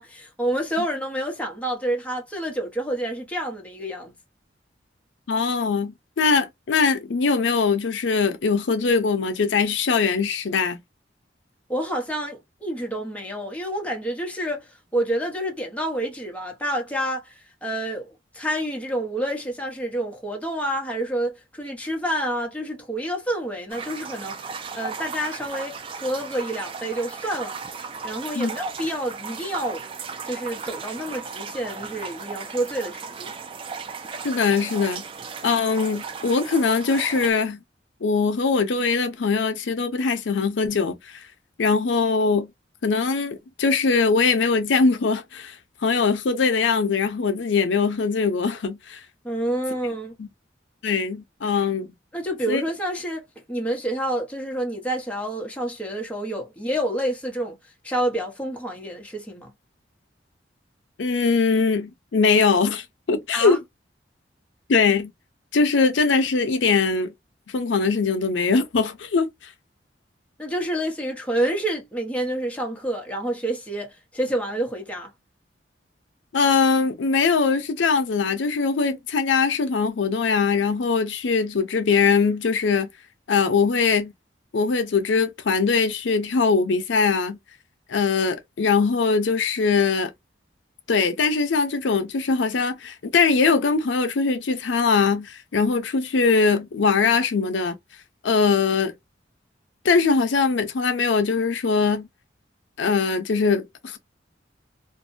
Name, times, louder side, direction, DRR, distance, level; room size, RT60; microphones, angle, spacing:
voice 1, 0.0-4.1 11.7-27.6 28.0-29.8 30.3-33.3 49.2-50.2 52.1-53.2 53.5-57.6 57.8-59.5 63.3-63.6 70.4-75.1, right 1 dB, 10° left, 0.7 m, -28 dB
voice 2, 5.3-10.8 28.3-28.5 34.2-35.0 35.4-37.6 38.0-41.2 41.6-42.5 42.8-45.6 45.8-49.0 50.2-50.3 50.8-51.9 52.5-52.6 61.0-63.6 64.7-65.1 65.5-67.1 67.5-69.5 76.3-82.9 83.3-84.1 84.5-87.4 87.9-90.1 90.9-97.8 98.2-98.9 99.8-102.1 102.8-104.0, left 4 dB, 85° left, 0.5 m, -21 dB
sound 1, 23.7-37.3, right 5 dB, 30° right, 0.3 m, -36 dB
2.6 x 2.1 x 2.5 m
head